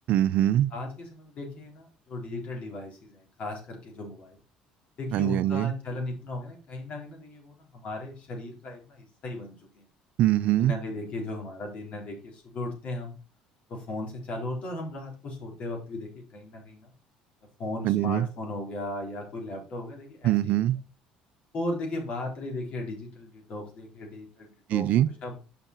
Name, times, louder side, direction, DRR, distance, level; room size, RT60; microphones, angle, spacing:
voice 1, 0.1-0.7 5.1-5.7 10.2-10.7 17.8-18.3 20.2-20.8 24.7-25.1, right 13 dB, 65° right, 0.5 m, -23 dB
voice 2, 0.7-4.4 5.0-9.9 10.6-13.2 13.7-16.9 17.6-20.6 21.5-24.9 25.2-25.4, left 2 dB, 55° left, 3.8 m, -36 dB
6.8 x 5.9 x 4.5 m
supercardioid pair, 95°, 3 cm